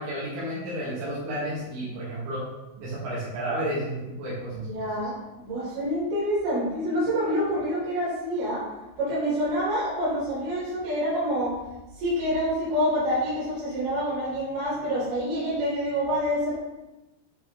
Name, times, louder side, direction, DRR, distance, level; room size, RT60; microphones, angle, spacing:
voice 1, 0.0-2.4 2.8-4.9, right 1 dB, 80° right, -8 dB, 4.0 m, -32 dB
voice 2, 4.5-8.6 9.0-11.5 12.0-16.6, equal, 60° right, -8 dB, 4.3 m, -27 dB
8.7 x 3.8 x 3.7 m, 1.0 s
omnidirectional pair, 5.3 m